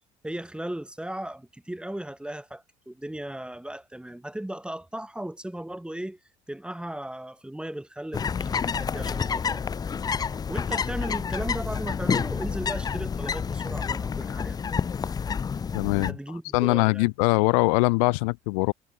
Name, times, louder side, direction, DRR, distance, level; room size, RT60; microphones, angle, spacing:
voice 1, 0.2-6.2 6.5-9.6 10.5-14.6 16.0-17.1, right 1 dB, 5° right, 1.3 m, -36 dB
sound 1, 8.1-16.1, left 6 dB, 20° left, 0.4 m, -29 dB
voice 2, 15.7-16.1 16.5-18.7, left 29 dB, 70° left, 0.6 m, -22 dB
hypercardioid pair, 55°, 18 cm